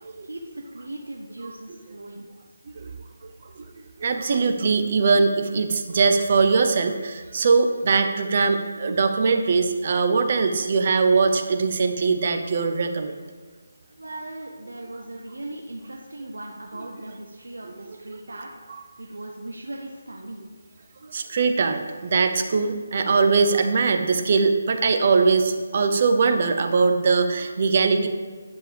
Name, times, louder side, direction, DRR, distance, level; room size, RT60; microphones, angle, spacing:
voice 1, 0.2-2.3 14.0-20.4, right 1 dB, 90° right, 0 dB, 1.1 m, -38 dB
voice 2, 4.0-13.2 21.1-28.1, right 4 dB, 45° right, 6 dB, 0.9 m, -21 dB
10.5 x 6.7 x 3.5 m, 1.4 s
figure-of-eight pair, 160°, 0 cm